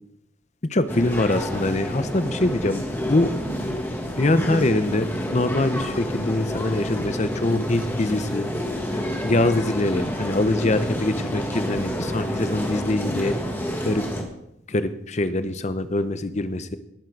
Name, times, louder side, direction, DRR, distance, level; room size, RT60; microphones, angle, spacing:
voice 1, 0.7-3.3 4.2-8.5 8.9-13.4 13.8-14.0 14.7-16.8, left 2 dB, 35° left, 12 dB, 0.7 m, -24 dB
sound 1, 0.9-14.2, equal, 10° left, 1.4 m, -29 dB
18.5 x 7.4 x 4.6 m, 0.79 s
head